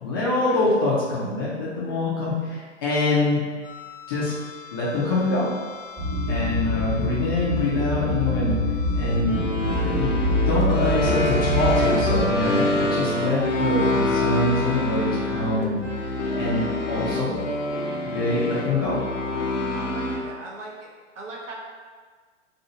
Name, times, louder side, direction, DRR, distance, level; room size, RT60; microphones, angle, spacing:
voice 1, 0.0-3.4 4.1-4.3 4.7-5.5 6.3-8.6 8.9-9.4 9.8-17.3 18.0-19.0, left 2 dB, 20° left, -7 dB, 0.3 m, -25 dB
sound 1, 3.7-20.2, left 1 dB, 85° left, 0.6 m, -27 dB
sound 2, 6.0-12.2, left 1 dB, 25° right, 1.1 m, -25 dB
voice 2, 19.7-20.9 21.1-21.5, right 2 dB, 75° right, -2 dB, 0.8 m, -39 dB
2.7 x 2.3 x 2.8 m, 1.5 s
hypercardioid pair, 120°, 37 cm